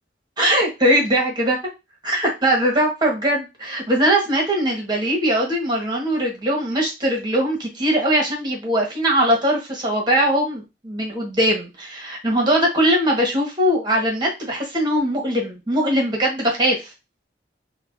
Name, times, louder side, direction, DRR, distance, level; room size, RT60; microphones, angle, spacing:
voice 1, 0.4-1.6 2.0-16.8, right 1 dB, 25° right, -1 dB, 1.4 m, -20 dB
6.5 x 2.4 x 2.6 m, 0.25 s
head